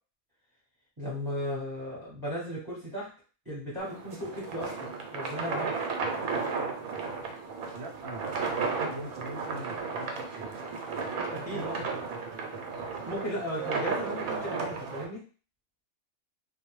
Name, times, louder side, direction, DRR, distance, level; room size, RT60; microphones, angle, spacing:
voice 1, 1.0-3.1 3.4-5.8 11.3-11.8 13.0-15.2, equal, 20° right, -6 dB, 0.8 m, -36 dB
sound 1, 3.8-15.1, right 4 dB, 85° right, 1.0 m, -34 dB
voice 2, 7.7-8.3 8.9-11.1 11.4-12.6, right 1 dB, 65° right, 0 dB, 0.7 m, -44 dB
2.3 x 2.1 x 3.0 m, 0.38 s
omnidirectional pair, 1.5 m